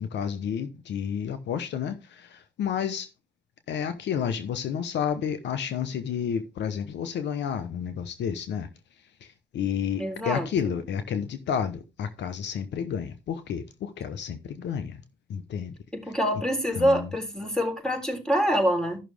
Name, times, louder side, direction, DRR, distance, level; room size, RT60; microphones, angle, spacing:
voice 1, 0.0-3.1 3.7-8.7 9.2-15.0 15.3-15.7 16.8-17.1, left 8 dB, 75° left, 0.9 m, -31 dB
voice 2, 10.0-10.7 15.9-19.0, equal, 5° left, 3.7 m, -26 dB
13.5 x 6.1 x 3.4 m
supercardioid pair, 55°, 18 cm